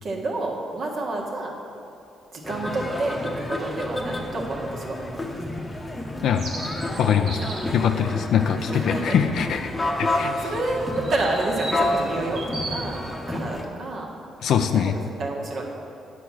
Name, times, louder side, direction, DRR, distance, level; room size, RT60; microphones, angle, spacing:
voice 1, 0.0-1.5 2.3-5.4 7.4-7.5 8.1-8.2 8.7-9.2 10.0-14.1 14.7-15.6, right 2 dB, 55° right, -1 dB, 1.4 m, -29 dB
sound 1, 2.4-13.6, left 1 dB, 20° left, 0.9 m, -30 dB
sound 2, 6.3-7.8 10.9-12.8, right 2 dB, 80° right, 1.6 m, -35 dB
voice 2, 7.0-7.4 7.7-9.7 10.0-10.5 14.4-15.0, left 8 dB, 75° left, 6 dB, 0.4 m, -22 dB
9.2 x 4.3 x 6.2 m, 2.6 s
cardioid pair, 90°, 0 cm